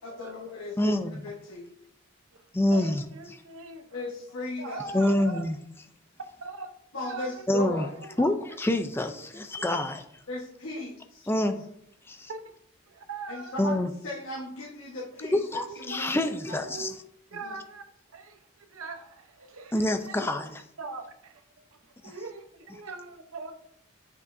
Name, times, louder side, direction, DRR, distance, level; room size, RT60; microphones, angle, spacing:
voice 1, 0.0-0.9 1.2-1.7 3.9-4.8 6.9-7.9 10.3-11.3 13.3-15.4 15.9-16.2 16.5-16.6 17.4-17.6, left 2 dB, 75° left, -5 dB, 1.3 m, -37 dB
voice 2, 0.8-1.1 2.5-3.0 4.9-5.6 7.5-7.9 8.2-10.0 11.3-11.6 12.1-12.3 13.6-13.9 15.3-16.9 19.7-20.6 22.0-22.1, left 1 dB, 10° left, 7 dB, 0.4 m, -26 dB
voice 3, 2.3-4.0 4.6-5.4 6.4-6.7 7.0-7.5 7.9-8.3 9.6-9.8 12.3-12.4 12.9-13.6 15.6-16.0 16.6-16.9 17.3-17.8 18.1-20.2 20.8-21.4 21.7-23.5, right 3 dB, 75° right, 6 dB, 0.8 m, -41 dB
8.1 x 5.5 x 2.6 m, 0.71 s
head